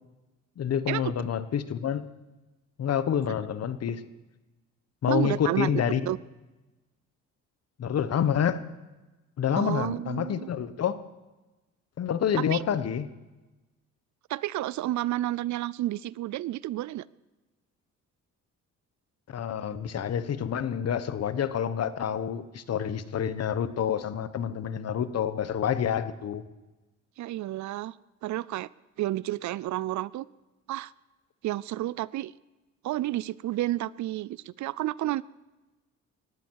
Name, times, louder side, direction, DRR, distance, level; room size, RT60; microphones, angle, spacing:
voice 1, 0.6-2.1 2.8-4.0 5.0-6.1 7.8-8.6 9.4-11.0 12.0-13.1 19.3-26.4, left 8 dB, 55° left, 13 dB, 1.1 m, -28 dB
voice 2, 5.1-5.8 6.1-6.2 9.6-10.5 12.4-12.6 14.3-17.1 27.2-27.9 28.2-28.7 29.0-30.3 30.7-30.9 31.4-32.3 32.8-35.2, right 15 dB, 70° right, 21 dB, 0.5 m, -30 dB
19.5 x 15.0 x 4.7 m, 1.1 s
cardioid pair, 90°, 30 cm